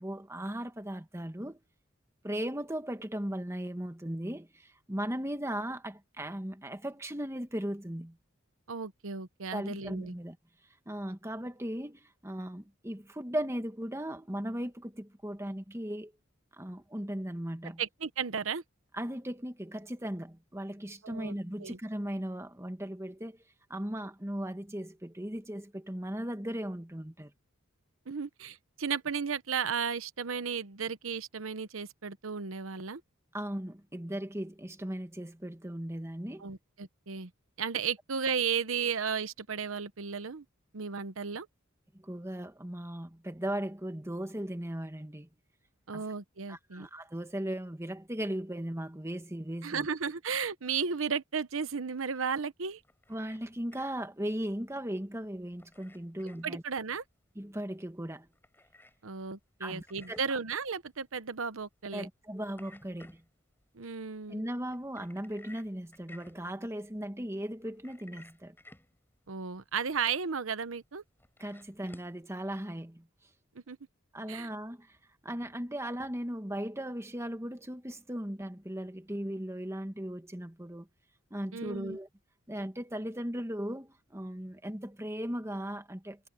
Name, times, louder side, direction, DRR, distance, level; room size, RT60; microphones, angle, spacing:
voice 1, 0.0-1.6 2.2-8.2 9.5-10.4 10.8-16.1 16.5-17.8 18.9-23.4 23.7-27.3 33.3-36.5 42.0-45.3 45.9-46.0 46.5-49.9 53.1-56.6 57.3-58.3 59.6-60.2 61.9-63.2 64.3-68.5 71.4-73.1 74.1-75.0 75.2-80.9 81.3-82.1 82.5-86.2, right 1 dB, 15° right, 1.6 m, -37 dB
voice 2, 8.7-10.1 17.8-18.6 21.0-21.8 28.1-33.0 36.4-37.3 37.6-40.4 40.7-41.5 45.9-46.9 49.6-52.8 56.4-57.0 59.0-62.1 63.7-64.4 69.3-71.0 73.7-73.8 74.3-74.5 81.5-82.0, right 6 dB, 80° right, 0.9 m, -34 dB
sound 1, 52.7-72.2, left 2 dB, 10° left, 7.5 m, -60 dB
head